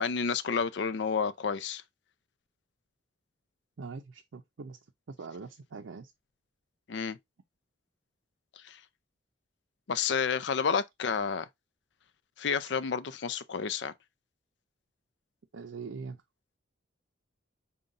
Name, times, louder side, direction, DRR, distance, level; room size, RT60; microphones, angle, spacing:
voice 1, 0.0-1.8 6.9-7.2 8.6-8.8 9.9-11.5 12.4-13.9, left 6 dB, 65° left, 0.4 m, -30 dB
voice 2, 3.8-4.8 5.1-6.1 15.5-16.2, right 4 dB, 80° right, 0.5 m, -42 dB
5.3 x 2.3 x 3.7 m
head